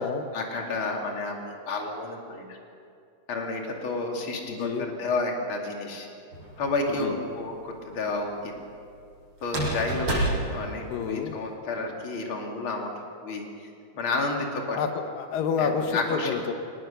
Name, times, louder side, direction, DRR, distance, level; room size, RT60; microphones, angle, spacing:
voice 1, 0.3-2.6 3.3-6.1 6.6-8.5 9.4-10.1 10.5-12.9 13.2-13.7 13.9-14.8 15.6-16.3, left 3 dB, 40° left, 1 dB, 3.1 m, -31 dB
voice 2, 4.5-4.9 7.0-7.2 10.9-11.4 14.7-16.5, left 6 dB, 85° left, 6 dB, 2.8 m, -29 dB
sound 1, 6.3-7.0 9.4-11.4, right 1 dB, 35° right, 7.2 m, -29 dB
24.5 x 19.5 x 6.8 m, 2.4 s
omnidirectional pair, 3.9 m